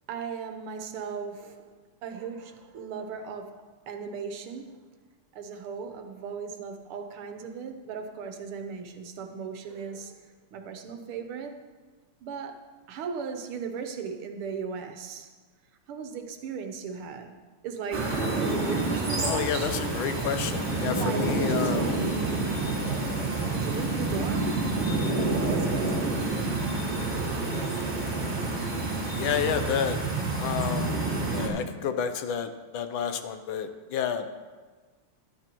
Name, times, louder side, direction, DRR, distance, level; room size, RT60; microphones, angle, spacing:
voice 1, 0.1-4.9 5.3-11.6 12.2-15.3 15.9-20.0 20.9-21.8 23.5-24.7 25.3-25.9, right 6 dB, 80° right, 1.8 m, -37 dB
sound 1, 17.9-31.5, right 2 dB, 25° right, 2.0 m, -28 dB
voice 2, 19.2-21.9 29.1-30.0 30.4-31.0 31.3-34.4, left 8 dB, 75° left, 1.3 m, -30 dB
13.5 x 12.0 x 3.0 m
omnidirectional pair, 2.4 m